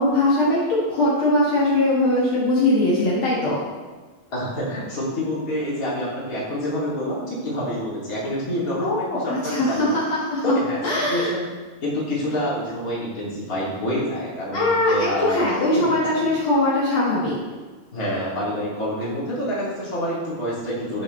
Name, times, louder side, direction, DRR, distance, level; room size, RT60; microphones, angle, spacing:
voice 1, 0.0-3.6 8.8-10.5 10.8-11.3 14.5-17.4, left 1 dB, 70° left, -7 dB, 1.3 m, -21 dB
voice 2, 4.3-10.0 10.4-10.8 11.1-11.5 11.8-15.4 15.7-16.3 17.9-21.0, equal, 25° left, -7 dB, 2.0 m, -27 dB
12.5 x 6.6 x 3.3 m, 1.3 s
omnidirectional pair, 5.2 m